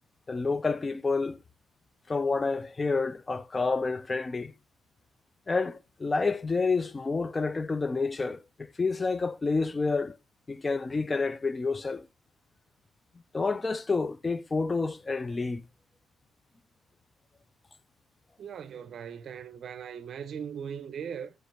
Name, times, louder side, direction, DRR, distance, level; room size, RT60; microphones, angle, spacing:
voice 1, 0.3-1.4 2.1-4.5 5.5-10.2 10.5-12.1 13.3-15.6, left 4 dB, 25° left, 0.4 m, -29 dB
voice 2, 18.4-21.3, right 7 dB, 60° right, 0.7 m, -39 dB
6.2 x 5.0 x 3.3 m
cardioid pair, 90°, 0 cm